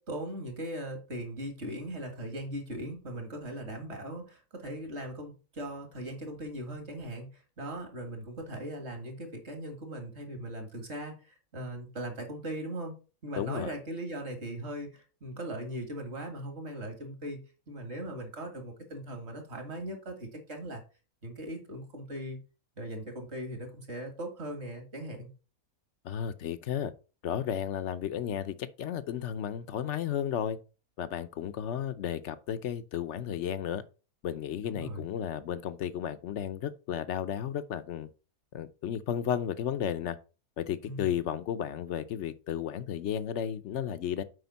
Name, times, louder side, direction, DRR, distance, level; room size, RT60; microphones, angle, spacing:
voice 1, 0.0-12.9 13.2-17.4 17.7-20.8 21.2-22.4 22.8-25.3 34.6-35.1 40.8-41.2, right 1 dB, 50° right, 2.0 m, -39 dB
voice 2, 13.4-13.7 26.0-26.9 27.2-30.6 31.0-33.8 34.2-38.1 38.5-40.2 40.6-44.2, left 9 dB, 60° left, 0.8 m, -33 dB
7.9 x 5.0 x 4.0 m
omnidirectional pair, 1.6 m